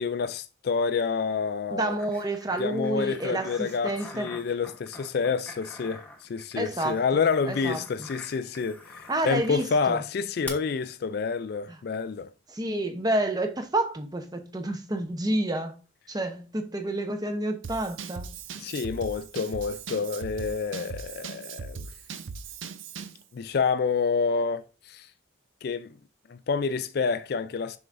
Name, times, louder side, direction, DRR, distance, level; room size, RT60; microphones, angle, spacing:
voice 1, 0.0-2.0 2.6-12.3 18.6-21.9 23.3-25.1 25.6-26.0 26.3-27.8, left 5 dB, 50° left, 0.3 m, -28 dB
voice 2, 1.7-4.3 6.6-8.1 9.1-10.0 12.5-15.8 16.1-18.3, right 1 dB, 20° right, 0.8 m, -29 dB
sound 1, 2.0-9.7 10.5-10.6, left 2 dB, 10° left, 1.0 m, -46 dB
Drum kit / Drum, 17.6-23.2, right 5 dB, 80° right, 0.5 m, -39 dB
7.7 x 6.0 x 2.6 m
head